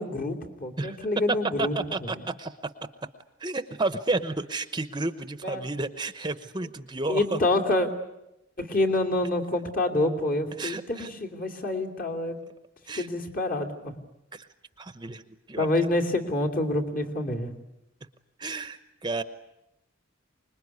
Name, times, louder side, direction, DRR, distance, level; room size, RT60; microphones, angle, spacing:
voice 1, 0.0-1.7 2.0-2.2 5.4-5.6 7.1-7.9 8.6-12.4 12.9-13.9 15.6-17.5, left 2 dB, 45° left, 3 dB, 2.9 m, -27 dB
voice 2, 1.6-2.7 3.4-7.4 10.6-11.1 12.9-13.1 14.3-14.5 14.8-15.7 18.4-19.2, right 3 dB, 20° right, 11 dB, 0.9 m, -32 dB
25.5 x 21.0 x 9.6 m, 0.89 s
head